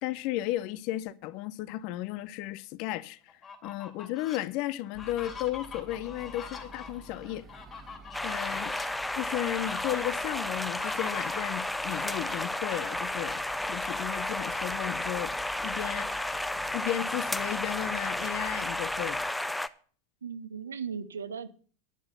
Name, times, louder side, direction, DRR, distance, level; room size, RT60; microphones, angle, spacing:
voice 1, 0.0-3.3 3.6-7.4 8.2-8.7 9.2-13.4 13.7-15.4 15.6-19.2, left 15 dB, 50° left, 0.6 m, -34 dB
Fowl, 3.3-4.4 4.9-12.6 13.6-14.7 15.1-15.2 15.6-17.3, left 6 dB, 30° left, 3.0 m, -44 dB
sound 1, 4.9-19.3, right 3 dB, 25° right, 1.3 m, -52 dB
sound 2, 8.1-19.7, left 1 dB, 5° left, 0.6 m, -32 dB
voice 2, 20.2-21.5, right 6 dB, 75° right, 0.8 m, -37 dB
11.0 x 7.5 x 6.7 m
figure-of-eight pair, 85°, 0 cm